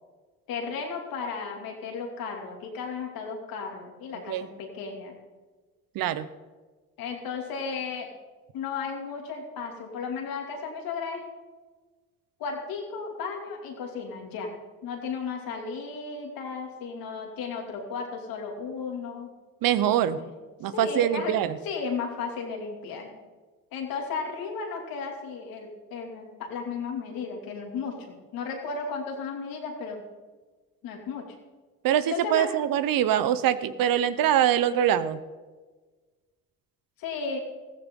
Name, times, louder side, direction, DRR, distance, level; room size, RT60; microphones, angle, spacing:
voice 1, 0.5-5.2 7.0-8.1 8.5-11.2 12.4-14.5 14.8-19.3 20.2-20.3 20.7-21.3 21.6-23.2 23.7-30.0 30.8-31.3 32.1-32.5 37.0-37.4, left 5 dB, 80° left, 2 dB, 3.0 m, -34 dB
voice 2, 5.9-6.3 19.6-20.2 20.6-21.6 31.8-35.2, right 10 dB, 75° right, 14 dB, 1.0 m, -24 dB
15.0 x 14.5 x 3.9 m, 1.3 s
supercardioid pair, 75°, 35 cm